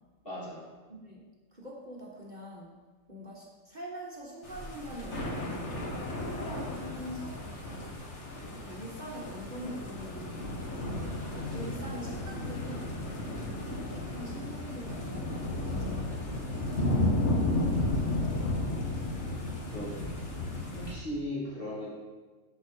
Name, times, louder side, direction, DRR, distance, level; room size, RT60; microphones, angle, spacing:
voice 1, 0.2-0.6 19.7-20.2 20.7-21.9, left 1 dB, 40° left, -8 dB, 3.1 m, -37 dB
voice 2, 0.9-1.2 1.5-2.7 3.1-5.8 6.1-7.4 8.5-13.0 13.4-16.4 17.7-18.5, equal, 35° right, -2 dB, 1.1 m, -44 dB
sound 1, 4.4-20.9, left 1 dB, 60° left, 1.8 m, -33 dB
13.5 x 5.0 x 4.3 m, 1.4 s
omnidirectional pair, 1.4 m